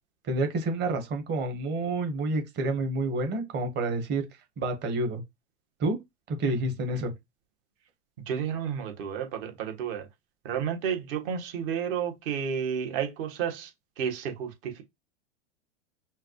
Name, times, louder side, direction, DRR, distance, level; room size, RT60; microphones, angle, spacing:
voice 1, 0.2-4.3 4.6-5.2 5.8-6.0 6.3-7.1, right 2 dB, 30° right, 1.4 m, -29 dB
voice 2, 8.3-10.1 10.4-13.7 14.0-14.8, right 8 dB, 50° right, 1.6 m, -31 dB
5.5 x 2.5 x 3.1 m
hypercardioid pair, 130°, 35 cm